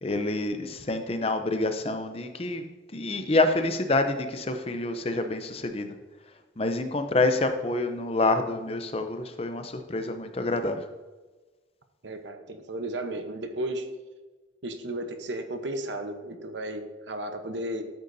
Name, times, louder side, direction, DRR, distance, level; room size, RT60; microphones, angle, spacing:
voice 1, 0.0-2.6 2.9-5.9 6.6-10.8, left 2 dB, 30° left, 7 dB, 0.6 m, -27 dB
voice 2, 12.0-13.9 14.6-17.8, right 1 dB, 75° right, 6 dB, 1.0 m, -34 dB
12.5 x 8.0 x 2.7 m, 1.3 s
head